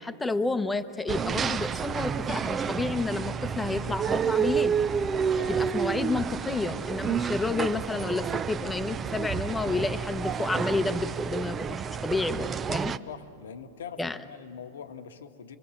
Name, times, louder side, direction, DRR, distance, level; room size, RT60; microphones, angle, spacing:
voice 1, 0.0-4.7 5.5-13.0 14.0-14.2, left 3 dB, 10° left, 10 dB, 1.0 m, -30 dB
sound 1, 1.1-13.0, right 7 dB, 20° right, 0.5 m, -30 dB
voice 2, 5.3-5.8 13.1-15.6, left 7 dB, 85° left, 7 dB, 1.4 m, -43 dB
28.0 x 22.0 x 7.2 m, 2.7 s
hypercardioid pair, 125°, 0 cm